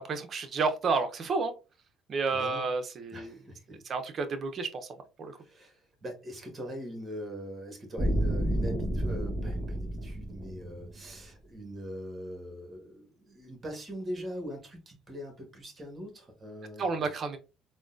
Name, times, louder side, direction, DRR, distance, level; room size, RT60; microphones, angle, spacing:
voice 1, 0.0-1.5 2.1-3.3 3.7-5.4 16.8-17.4, right 4 dB, 45° right, 8 dB, 0.6 m, -31 dB
voice 2, 2.3-2.7 3.1-3.8 5.4-17.1, equal, 25° right, 4 dB, 1.3 m, -42 dB
sound 1, 8.0-11.2, right 1 dB, 10° right, 1.1 m, -30 dB
3.6 x 2.2 x 2.5 m, 0.31 s
cardioid pair, 100°, 0 cm